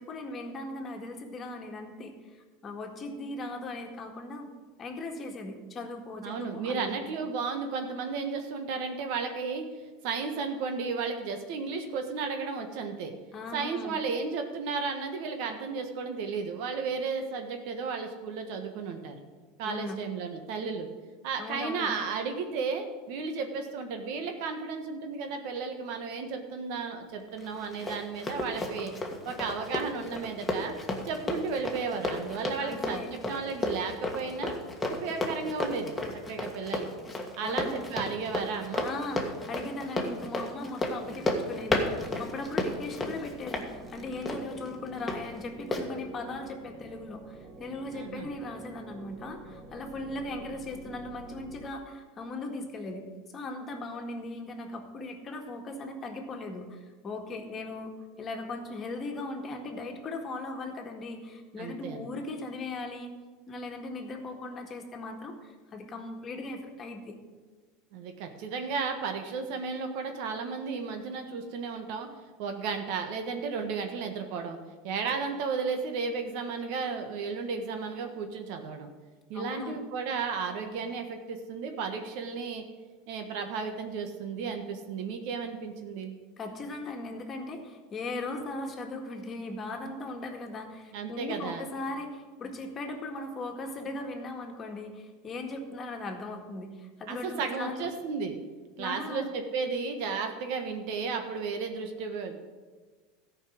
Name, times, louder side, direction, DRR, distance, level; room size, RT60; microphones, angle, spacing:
voice 1, 0.0-4.5 4.8-7.0 13.3-14.0 19.6-20.0 21.4-21.9 32.6-33.1 37.4-37.9 38.8-63.1 63.5-67.2 79.3-79.8 86.4-97.9 98.8-99.3, left 2 dB, 30° left, 3 dB, 1.8 m, -38 dB
voice 2, 6.2-9.6 10.0-13.1 13.5-19.2 19.6-20.9 21.2-28.9 29.2-30.7 31.0-34.5 34.9-36.0 36.3-36.8 37.4-38.9 47.9-48.3 61.6-62.1 67.9-72.1 72.4-74.6 74.8-78.9 79.3-82.6 83.1-86.1 90.9-91.7 97.1-98.4 98.8-102.4, right 5 dB, 65° right, 6 dB, 1.4 m, -34 dB
Run, 27.4-45.2 45.7-45.8, left 2 dB, 10° left, 1.7 m, -33 dB
sound 1, 41.1-51.7, right 2 dB, 15° right, 1.4 m, -48 dB
13.5 x 5.5 x 7.8 m, 1.4 s
supercardioid pair, 115°, 0 cm